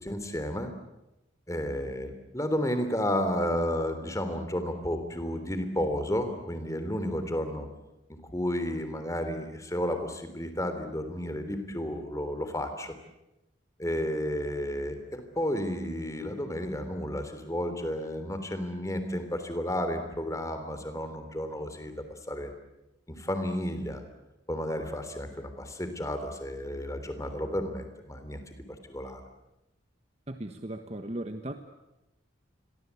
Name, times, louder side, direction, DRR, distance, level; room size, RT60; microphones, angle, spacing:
voice 1, 0.0-0.7 1.5-7.7 8.1-12.9 13.8-22.5 23.1-24.0 24.5-29.2, equal, 15° left, 8 dB, 3.4 m, -32 dB
voice 2, 30.3-31.5, right 1 dB, 35° right, 6 dB, 1.3 m, -37 dB
28.5 x 23.5 x 8.4 m, 0.95 s
head